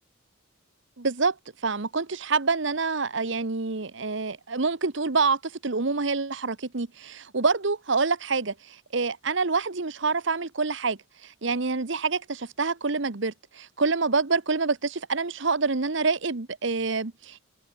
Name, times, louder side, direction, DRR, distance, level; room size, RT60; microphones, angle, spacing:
voice 1, 1.0-1.3 1.6-17.5, right 4 dB, 65° right, 1.1 m, -27 dB
head